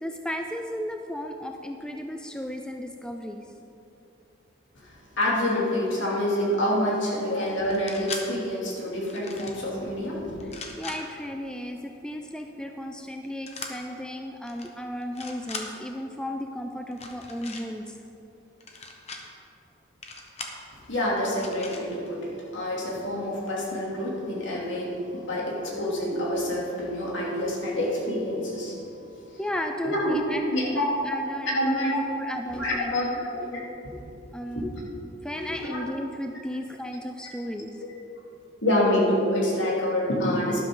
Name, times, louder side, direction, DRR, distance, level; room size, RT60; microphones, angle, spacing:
voice 1, 0.0-3.5 10.4-18.0 29.4-33.3 34.3-34.7 35.2-37.7, equal, 5° left, 4 dB, 0.4 m, -35 dB
voice 2, 5.2-10.3 20.9-28.8 29.3-29.4 29.8-30.2 30.5-30.8 31.2-32.2 32.5-33.9 34.5-34.6 35.3-35.8 38.6-40.6, left 1 dB, 70° left, -4 dB, 2.8 m, -27 dB
sound 1, 7.6-8.2 9.1-9.6 10.4-11.0 13.5-13.7 14.4-14.7 15.0-15.7 16.9-17.6 18.6-19.2 20.0-20.6 21.4-21.8, left 4 dB, 30° left, 1.0 m, -38 dB
12.5 x 11.5 x 3.9 m, 2.8 s
head